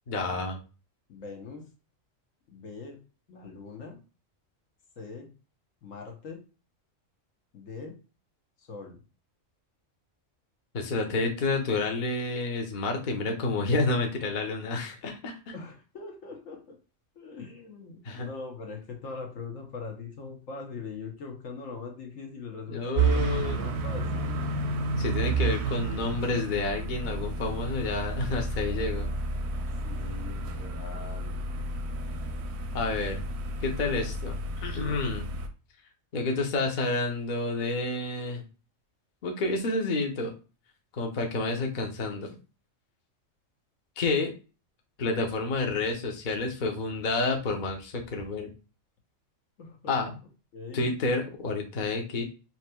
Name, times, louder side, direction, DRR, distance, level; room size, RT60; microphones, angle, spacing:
voice 1, 0.1-0.6 10.7-15.5 18.0-18.3 22.7-23.6 25.0-29.1 32.7-33.2 33.6-35.2 36.1-38.4 39.2-40.3 41.0-42.3 44.0-44.3 45.0-48.5 49.9-50.2 50.7-52.2, left 3 dB, 45° left, 2 dB, 0.8 m, -29 dB
voice 2, 1.1-1.7 2.5-3.0 3.3-4.0 5.0-5.3 5.8-6.4 7.5-8.0 8.6-9.0 15.5-16.8 17.2-24.6 29.5-29.6 29.8-31.5 49.6-50.0 50.5-50.9, left 4 dB, 75° left, 2 dB, 1.4 m, -42 dB
sound 1, 23.0-35.5, right 3 dB, 65° right, 0.8 m, -31 dB
5.3 x 3.0 x 2.2 m, 0.33 s
omnidirectional pair, 1.4 m